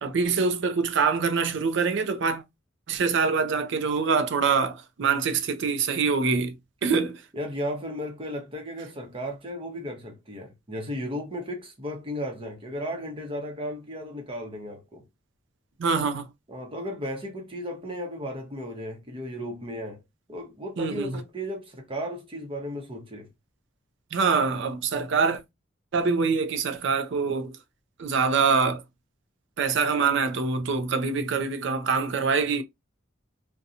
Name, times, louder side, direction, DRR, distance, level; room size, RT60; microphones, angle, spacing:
voice 1, 0.0-2.4 2.9-6.5 6.8-7.2 15.8-16.3 20.8-21.1 24.1-25.4 25.9-27.6 28.0-28.8 29.6-32.6, right 5 dB, 70° right, 0.5 m, -24 dB
voice 2, 7.3-15.0 16.5-20.0 20.3-23.3, equal, 30° right, 0.8 m, -35 dB
2.7 x 2.2 x 2.5 m
head